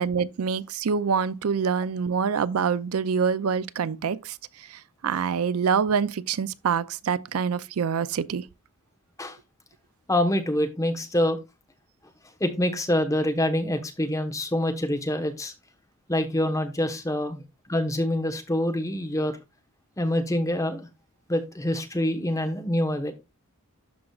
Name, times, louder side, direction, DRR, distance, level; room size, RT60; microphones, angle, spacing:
voice 1, 0.0-8.5, right 6 dB, 85° right, 0.4 m, -26 dB
voice 2, 10.1-11.4 12.4-15.5 16.1-17.4 17.7-19.4 20.0-20.9 21.3-23.1, left 1 dB, 15° left, 1.1 m, -26 dB
12.0 x 4.9 x 2.4 m
head